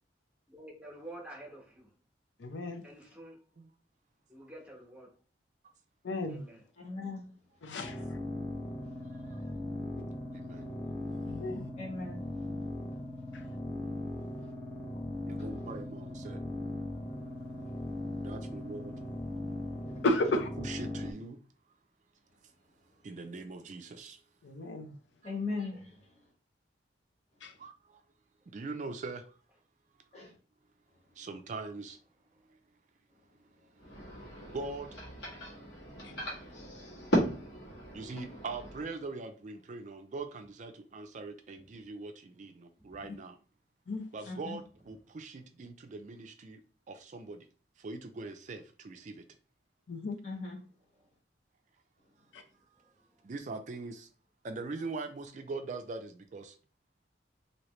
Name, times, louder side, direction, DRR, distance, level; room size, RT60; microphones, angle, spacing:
voice 1, 0.5-1.9 2.8-3.4 4.3-5.1 6.3-6.6 36.5-37.8 42.8-43.1, right 1 dB, 5° right, 1.0 m, -50 dB
voice 2, 2.4-2.8 6.0-6.4 7.6-8.0 11.3-11.7 13.3-13.4 20.0-20.5 24.4-24.9 27.4-27.5 36.0-36.1 43.9-44.0 49.9-50.2 52.3-52.4, left 2 dB, 85° left, 0.5 m, -33 dB
voice 3, 6.8-7.2 11.8-12.2 19.8-20.0 25.2-25.8 30.1-30.3 36.6-36.8 44.2-44.6 50.2-50.6, left 3 dB, 35° left, 1.2 m, -38 dB
sound 1, 7.8-21.1, left 1 dB, 10° left, 0.6 m, -39 dB
voice 4, 15.3-16.4 18.2-18.9 20.6-21.4 23.0-24.2 27.6-27.7 28.5-29.2 31.2-32.0 34.5-34.9 37.9-43.4 44.1-46.6 46.9-47.4 47.8-49.2 53.2-54.1 54.4-56.5, right 3 dB, 40° right, 0.4 m, -41 dB
sound 2, 33.8-38.8, equal, 70° left, 1.4 m, -36 dB
3.1 x 2.7 x 3.0 m
head